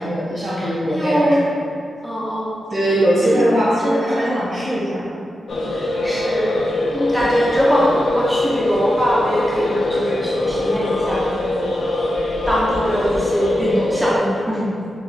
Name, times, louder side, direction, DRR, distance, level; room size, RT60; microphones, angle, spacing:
voice 1, 0.0-1.4 2.7-5.0, equal, 55° right, -9 dB, 1.3 m, -20 dB
voice 2, 0.6-1.5 2.0-2.6 3.2-3.5 3.8-4.5 5.7-6.6 6.9-11.5 12.5-14.7, equal, 5° right, -8 dB, 0.3 m, -21 dB
sound 1, 5.5-14.2, left 2 dB, 75° left, 0.4 m, -23 dB
4.9 x 2.1 x 2.3 m, 2.3 s
wide cardioid pair, 170°, 0 cm